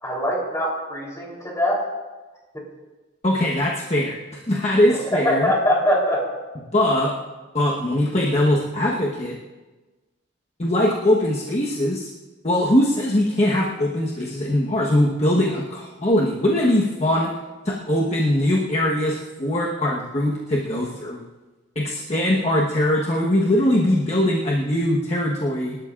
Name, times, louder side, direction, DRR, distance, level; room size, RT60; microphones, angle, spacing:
voice 1, 0.0-1.8 4.9-6.3, equal, 15° left, -3 dB, 3.7 m, -22 dB
voice 2, 3.2-5.5 6.7-7.1 7.5-9.4 10.6-12.1 12.4-17.3 17.6-21.3 21.7-25.8, left 1 dB, 35° left, -3 dB, 1.3 m, -21 dB
26.0 x 12.5 x 2.5 m, 1.2 s
head